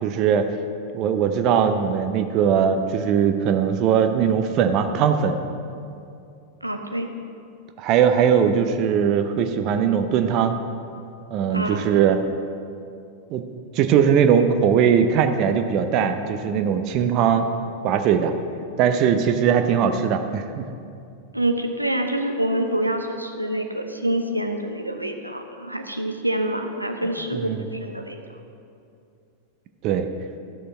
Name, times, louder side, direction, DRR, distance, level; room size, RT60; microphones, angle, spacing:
voice 1, 0.0-0.5 0.9-5.4 7.8-10.6 11.3-12.2 13.3-13.4 13.7-17.5 17.8-18.3 18.8-20.6 27.3-27.6 29.8-30.1, right 8 dB, 40° right, 7 dB, 0.6 m, -20 dB
voice 2, 6.6-7.1 11.5-12.0 21.3-28.2, right 1 dB, 90° right, 4 dB, 0.6 m, -26 dB
13.0 x 6.5 x 4.4 m, 2.5 s
figure-of-eight pair, 90°, 0 cm